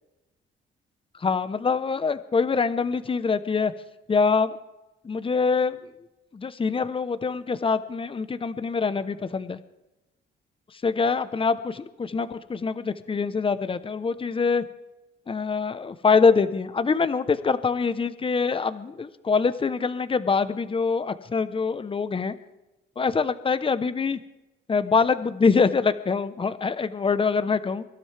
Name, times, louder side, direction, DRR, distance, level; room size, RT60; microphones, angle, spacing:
voice 1, 1.2-3.7 4.1-4.6 5.0-5.8 6.3-9.6 10.8-14.6 15.3-22.3 23.0-24.2 24.7-27.8, left 5 dB, 25° left, 12 dB, 0.9 m, -24 dB
24.0 x 12.5 x 3.5 m, 0.99 s
cardioid pair, 90°, 20 cm